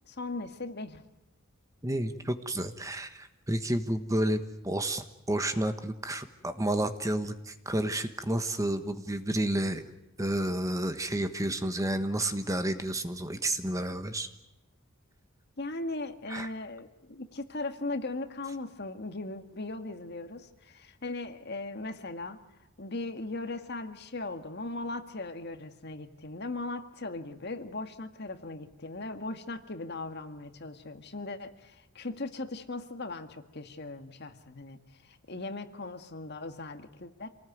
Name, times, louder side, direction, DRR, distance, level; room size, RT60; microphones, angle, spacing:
voice 1, 0.1-1.1 15.6-22.4 22.8-37.3, left 2 dB, 50° left, 7 dB, 1.8 m, -38 dB
voice 2, 1.8-9.9 10.2-14.3 16.3-16.5, right 1 dB, 15° right, 9 dB, 1.3 m, -31 dB
27.5 x 19.0 x 9.3 m, 0.95 s
head